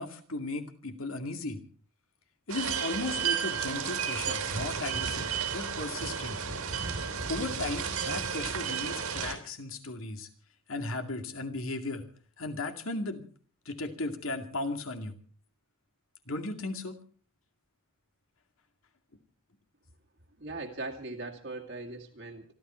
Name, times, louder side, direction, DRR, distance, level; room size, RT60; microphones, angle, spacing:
voice 1, 0.0-1.6 2.5-6.4 7.3-10.3 10.7-12.1 12.4-13.3 13.7-15.1 16.3-17.0, left 2 dB, 70° left, 6 dB, 2.3 m, -36 dB
sound 1, 2.5-9.3, right 7 dB, 80° right, 3.5 m, -32 dB
voice 2, 20.4-22.5, right 2 dB, 55° right, 1 dB, 2.1 m, -39 dB
26.5 x 12.5 x 4.4 m, 0.42 s
head